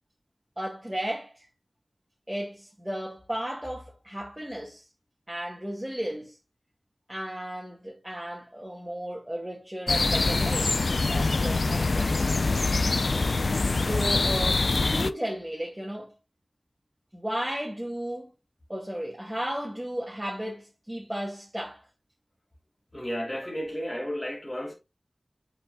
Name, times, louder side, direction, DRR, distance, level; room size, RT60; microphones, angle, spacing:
voice 1, 0.6-1.5 2.3-4.8 5.3-6.4 7.1-10.8 11.1-12.2 13.7-16.1 17.1-18.3 18.7-21.8, equal, 10° right, 2.1 m, -34 dB
sound 1, 9.9-15.1, left 3 dB, 70° left, 0.5 m, -24 dB
voice 2, 22.9-24.7, equal, 20° left, 2.8 m, -33 dB
7.7 x 5.5 x 2.3 m
wide cardioid pair, 75°, 0 cm